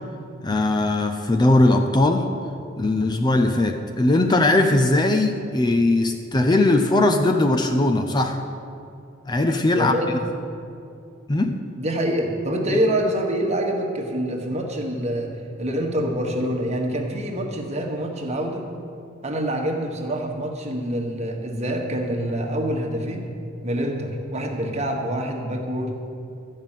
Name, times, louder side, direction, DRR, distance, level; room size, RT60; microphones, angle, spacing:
voice 1, 0.4-2.3 2.8-8.4 9.3-9.9 11.3-11.6 12.7-12.8, left 2 dB, 20° left, 6 dB, 0.5 m, -19 dB
voice 2, 9.7-10.1 11.8-15.3 15.6-18.6 19.2-23.3 23.6-26.0, right 1 dB, 35° right, 1 dB, 1.4 m, -26 dB
13.5 x 5.6 x 9.1 m, 2.5 s
head